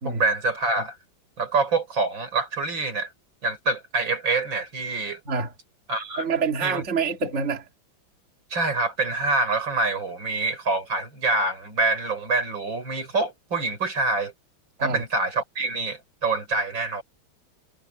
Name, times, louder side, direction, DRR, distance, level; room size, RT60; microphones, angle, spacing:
voice 1, 0.0-1.0 1.4-3.1 3.4-5.2 5.9-6.2 6.6-6.8 8.5-14.3 14.8-17.0, right 3 dB, 70° right, 5.7 m, -26 dB
voice 2, 6.2-7.6 14.8-15.0, right 5 dB, 35° right, 2.2 m, -26 dB
omnidirectional pair, 2.2 m